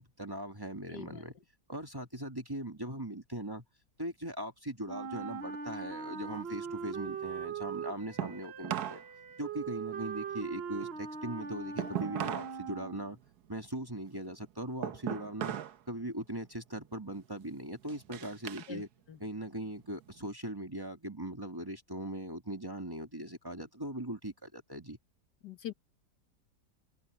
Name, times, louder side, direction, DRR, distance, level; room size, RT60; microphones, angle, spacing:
voice 1, 0.0-1.4 1.7-3.6 4.0-9.0 9.4-13.2 13.5-15.6 15.9-18.9 19.2-25.0, right 1 dB, 15° right, 1.7 m, -40 dB
Wind instrument woodwind instrument, 4.9-13.2, right 6 dB, 45° right, 1.0 m, -41 dB
sound 1, 5.9-9.1 9.4-12.6 12.9-15.8 16.2-16.6 17.1-18.7 19.1-20.3, right 11 dB, 75° right, 1.4 m, -40 dB
voice 2, 25.4-25.7, left 9 dB, 80° left, 2.0 m, -42 dB
open air
omnidirectional pair, 1.7 m